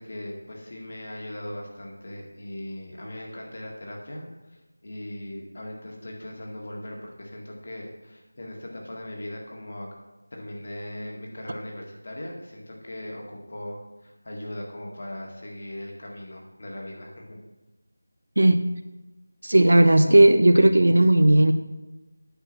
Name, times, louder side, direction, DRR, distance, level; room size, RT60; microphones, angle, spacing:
voice 1, 0.0-9.9 10.3-17.4, left 1 dB, 45° left, 0 dB, 1.9 m, -39 dB
voice 2, 19.4-21.5, right 1 dB, 75° right, 9 dB, 0.8 m, -16 dB
8.9 x 4.7 x 6.2 m, 1.1 s
figure-of-eight pair, 175°, 0 cm